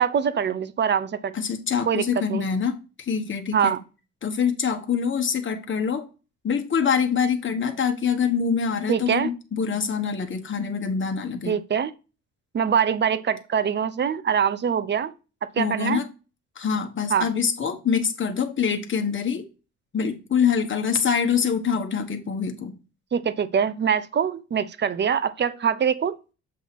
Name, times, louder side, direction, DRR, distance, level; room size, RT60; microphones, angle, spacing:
voice 1, 0.0-1.3 1.9-2.5 3.5-3.8 8.9-9.3 11.5-11.9 12.5-15.1 15.5-16.0 17.1-17.3 23.1-26.2, right 7 dB, 35° right, 0.6 m, -23 dB
voice 2, 1.3-3.7 4.2-6.1 6.4-11.6 15.6-16.1 16.6-19.5 19.9-22.8, left 6 dB, 40° left, 1.2 m, -25 dB
7.4 x 2.8 x 5.8 m
cardioid pair, 90°, 30 cm